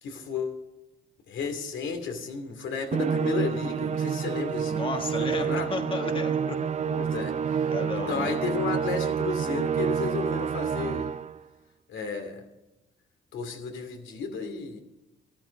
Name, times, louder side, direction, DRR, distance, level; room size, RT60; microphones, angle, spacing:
voice 1, 0.0-0.6 1.3-4.9 5.2-5.7 6.9-7.7 7.9-11.1 11.9-12.4 13.3-14.8, left 5 dB, 75° left, 5 dB, 2.6 m, -33 dB
Musical instrument, 2.9-11.4, right 7 dB, 35° right, 0.6 m, -28 dB
voice 2, 4.7-6.6 7.7-8.3, left 3 dB, 25° left, 5 dB, 1.4 m, -33 dB
13.5 x 12.5 x 5.2 m, 1.0 s
cardioid pair, 90°, 20 cm